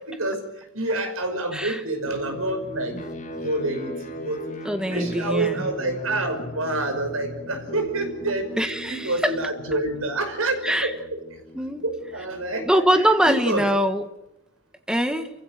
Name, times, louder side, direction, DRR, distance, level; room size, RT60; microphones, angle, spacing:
voice 1, 0.7-2.9 3.4-4.4 4.8-10.6 10.8-10.9 11.8-12.8 13.2-13.6, right 2 dB, 85° right, 6 dB, 5.7 m, -27 dB
voice 2, 1.5-1.8 4.6-5.7 8.6-9.4 10.6-10.9 11.5-11.8 12.6-14.1 14.9-15.3, equal, 5° right, 7 dB, 1.7 m, -23 dB
sound 1, 2.0-13.0, equal, 35° left, 3.4 m, -38 dB
29.0 x 16.0 x 7.7 m, 0.90 s
head